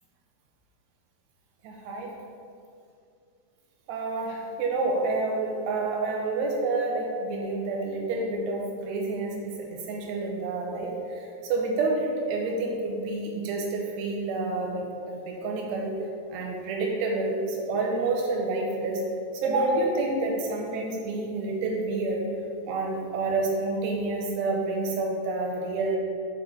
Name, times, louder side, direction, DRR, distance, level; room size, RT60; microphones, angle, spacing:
voice 1, 1.6-2.1 3.9-9.3 9.7-15.9 16.3-19.0 19.4-22.2 22.7-26.0, right 3 dB, 80° right, -1 dB, 2.8 m, -28 dB
7.8 x 4.5 x 3.8 m, 2.4 s
omnidirectional pair, 5.3 m